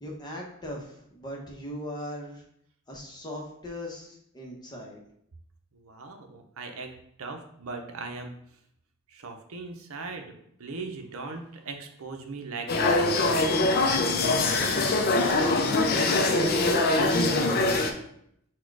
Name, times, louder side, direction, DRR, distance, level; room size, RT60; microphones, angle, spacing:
voice 1, 0.0-2.4 2.9-5.0 14.6-15.5 15.8-17.8, equal, 20° left, -1 dB, 0.8 m, -38 dB
voice 2, 5.7-6.9 7.2-8.3 9.1-13.0, right 3 dB, 75° right, 4 dB, 0.6 m, -39 dB
sound 1, 12.7-17.9, left 2 dB, 45° left, 0.5 m, -23 dB
4.2 x 2.2 x 4.6 m, 0.72 s
head